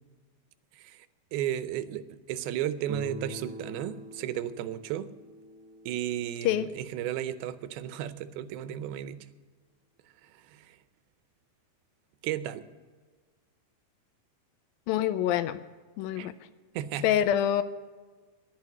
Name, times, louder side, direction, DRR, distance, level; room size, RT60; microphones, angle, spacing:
voice 1, 0.8-1.1 1.3-5.1 5.9-9.3 10.5-10.8 12.2-12.6 16.2-16.3 16.7-17.1, right 11 dB, 85° right, 13 dB, 2.6 m, -34 dB
Guitar, 2.9-7.7, equal, 65° right, 1.0 m, -45 dB
voice 2, 14.9-15.6 16.0-16.3 17.0-17.6, left 11 dB, 80° left, 13 dB, 2.3 m, -26 dB
10.5 x 10.5 x 9.3 m, 1.5 s
omnidirectional pair, 4.3 m